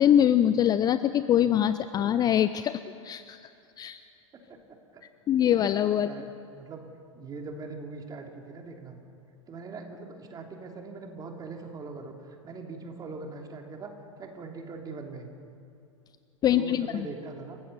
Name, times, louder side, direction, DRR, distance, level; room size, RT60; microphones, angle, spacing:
voice 1, 0.0-3.5 3.8-4.0 5.3-6.1 16.4-17.1, left 10 dB, 20° left, 13 dB, 0.5 m, -23 dB
voice 2, 4.5-5.0 6.1-6.3 6.5-6.8 7.1-9.0 9.5-13.9 14.2-15.3 16.5-17.6, right 3 dB, 20° right, 2 dB, 3.1 m, -41 dB
29.5 x 15.5 x 6.8 m, 2.5 s
figure-of-eight pair, 95°, 17 cm